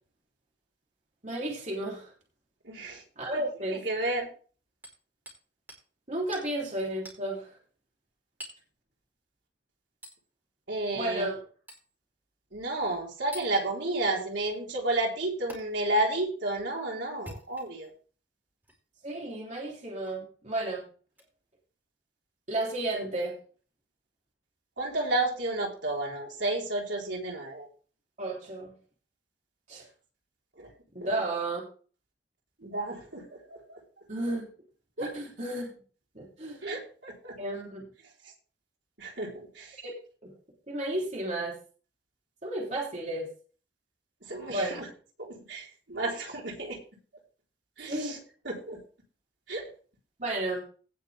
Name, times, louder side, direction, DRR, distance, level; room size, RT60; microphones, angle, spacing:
voice 1, 1.2-2.1 3.2-3.8 6.1-7.5 10.9-11.4 19.0-20.8 22.5-23.4 28.2-28.7 29.7-29.8 30.9-31.6 34.1-34.5 35.0-35.7 36.2-36.6 37.4-37.8 39.8-39.9 40.2-40.3 40.7-41.5 42.4-43.3 44.5-44.8 47.9-48.2 50.2-50.6, right 1 dB, 40° right, -2 dB, 3.3 m, -32 dB
voice 2, 2.6-3.0 3.3-3.4 3.7-4.3 10.7-11.3 12.5-17.9 24.8-27.7 30.6-30.7 31.0-31.1 32.6-33.8 35.0-35.2 36.6-37.4 39.0-39.8 44.3-44.9 45.2-46.8 47.8-48.2 48.4-48.8 49.5-49.6, right 2 dB, 75° right, -1 dB, 3.9 m, -32 dB
Hammer, 4.8-5.4 5.7-5.9 6.3-6.5 7.0-7.2 8.4-8.7 10.0-10.2 11.7-11.9 13.3-13.5 15.5-15.6 17.1-17.9 18.6-18.8 20.0-20.2 21.1-21.3 22.9-23.0, equal, 10° right, 4.7 m, -46 dB
17.5 x 6.6 x 3.5 m, 0.39 s
head